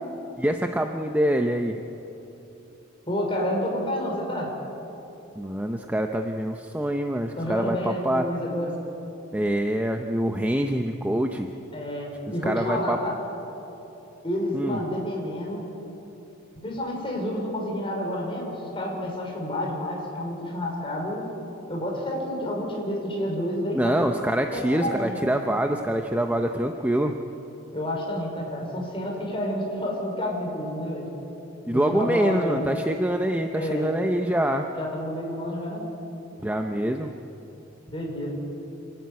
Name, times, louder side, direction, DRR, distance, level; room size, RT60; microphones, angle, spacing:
voice 1, 0.4-1.8 5.4-8.3 9.3-11.5 12.4-13.0 14.5-14.8 23.7-27.1 31.7-34.7 36.4-37.1, right 1 dB, 10° right, 4 dB, 0.7 m, -25 dB
voice 2, 3.1-4.5 7.3-8.7 11.7-13.1 14.2-15.7 16.6-21.2 21.7-24.0 24.5-25.2 27.7-31.1 31.7-32.6 33.5-33.9 34.8-35.9 37.9-38.4, left 1 dB, 25° left, -1 dB, 5.0 m, -29 dB
27.5 x 12.5 x 9.5 m, 3.0 s
head